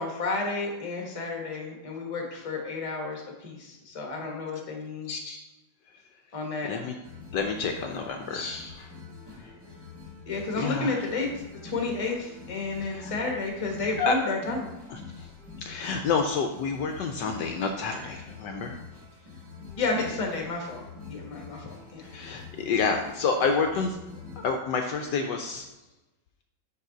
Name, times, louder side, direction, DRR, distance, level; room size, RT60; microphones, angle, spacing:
voice 1, 0.0-5.1 6.3-6.7 10.3-11.3 11.6-14.7 19.8-20.8 21.1-22.1, left 3 dB, 25° left, 1 dB, 0.8 m, -31 dB
voice 2, 5.1-5.4 6.7-6.9 7.3-8.9 9.4-9.5 10.6-11.0 12.8-13.1 14.0-14.2 14.9-15.3 15.6-18.8 22.1-24.0 24.4-25.7, left 5 dB, 75° left, 4 dB, 1.1 m, -29 dB
sound 1, 7.0-24.5, left 4 dB, 40° right, 1.7 m, -45 dB
5.7 x 5.4 x 3.8 m, 1.0 s
omnidirectional pair, 2.2 m